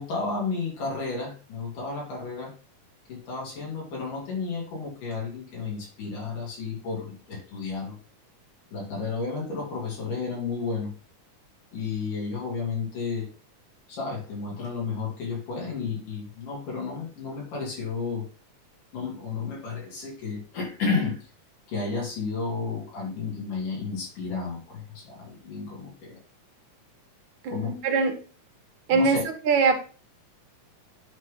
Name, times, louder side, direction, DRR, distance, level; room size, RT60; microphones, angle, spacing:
voice 1, 0.0-2.5 3.1-8.0 8.7-10.9 11.7-13.3 13.9-18.2 18.9-21.2 21.7-26.2 27.5-28.1 28.9-29.2, left 4 dB, 75° left, -3 dB, 4.8 m, -32 dB
voice 2, 27.4-28.1 28.9-29.8, right 4 dB, 70° right, 6 dB, 2.3 m, -23 dB
10.0 x 3.9 x 4.0 m, 0.37 s
omnidirectional pair, 3.7 m